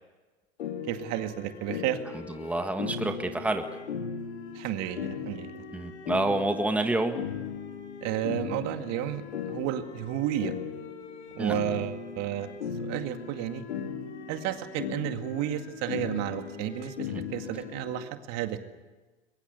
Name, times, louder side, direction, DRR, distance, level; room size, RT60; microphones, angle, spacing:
sound 1, 0.6-18.0, left 7 dB, 90° left, 2.4 m, -38 dB
voice 1, 0.9-2.0 4.5-5.6 8.0-10.5 11.3-12.5 12.8-13.7 14.3-18.6, right 12 dB, 50° right, 7 dB, 2.1 m, -32 dB
voice 2, 2.1-3.7 5.7-7.2 11.4-11.6 17.1-17.2, right 2 dB, 5° right, 6 dB, 1.7 m, -28 dB
22.5 x 22.0 x 8.2 m, 1.3 s
hypercardioid pair, 105°, 33 cm